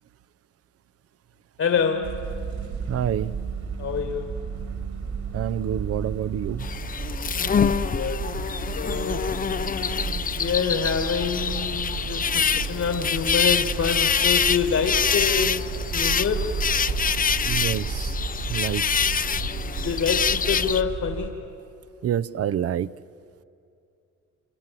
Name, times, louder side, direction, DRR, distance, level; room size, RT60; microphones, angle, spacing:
voice 1, 1.6-2.2 3.8-4.3 7.3-8.3 8.6-9.4 10.4-15.7 15.9-16.5 19.8-21.4, left 6 dB, 55° left, 5 dB, 2.0 m, -27 dB
sound 1, 1.7-6.7, right 7 dB, 85° right, 3.9 m, -44 dB
sound 2, 2.0-21.3, right 6 dB, 65° right, 3.6 m, -33 dB
voice 2, 2.9-3.3 5.3-6.7 17.4-18.2 18.5-18.8 22.0-22.9, right 10 dB, 50° right, 16 dB, 0.6 m, -27 dB
sound 3, 6.6-20.8, left 6 dB, 30° left, 0.5 m, -25 dB
26.5 x 26.0 x 7.6 m, 2.6 s
cardioid pair, 90°, 30 cm